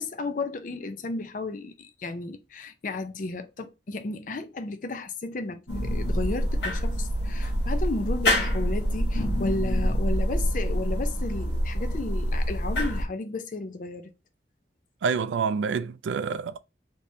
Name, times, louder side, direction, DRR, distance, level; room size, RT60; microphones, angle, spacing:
voice 1, 0.0-14.1, left 2 dB, 45° left, 0.5 m, -33 dB
sound 1, 5.7-13.1, equal, 75° left, 1.2 m, -26 dB
voice 2, 15.0-16.6, right 5 dB, 90° right, 0.3 m, -27 dB
3.4 x 2.9 x 2.6 m
head